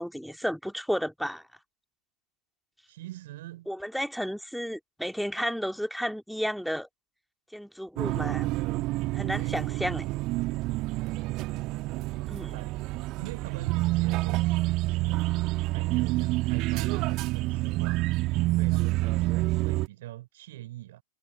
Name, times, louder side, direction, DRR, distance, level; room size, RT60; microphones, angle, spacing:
voice 1, 0.0-1.4 3.7-6.9 7.5-8.5 9.1-10.1 12.3-12.6, equal, ahead, 2.5 m, -32 dB
voice 2, 2.9-3.7 9.4-9.7 12.5-12.7 13.2-15.3 15.7-18.1 18.5-21.0, right 16 dB, 55° right, 4.3 m, -42 dB
sound 1, 8.0-19.9, right 20 dB, 40° right, 1.8 m, -28 dB
figure-of-eight pair, 90°, 0 cm